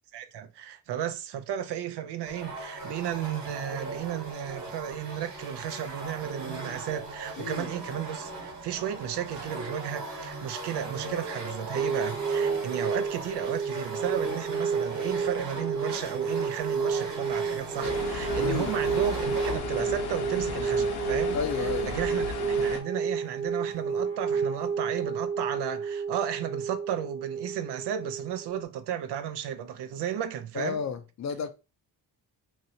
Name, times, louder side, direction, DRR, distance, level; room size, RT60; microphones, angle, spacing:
voice 1, 0.1-21.4 21.9-30.8, right 9 dB, 90° right, 0.5 m, -34 dB
sound 1, 2.3-19.6, right 2 dB, 50° right, 1.1 m, -38 dB
voice 2, 7.4-7.7 18.4-18.8 21.3-22.0 30.5-31.5, left 6 dB, 45° left, 0.4 m, -32 dB
sound 2, 11.7-28.6, right 6 dB, 20° right, 0.3 m, -31 dB
sound 3, 17.8-22.8, left 4 dB, 75° left, 0.8 m, -34 dB
2.9 x 2.8 x 2.6 m
wide cardioid pair, 165°, 39 cm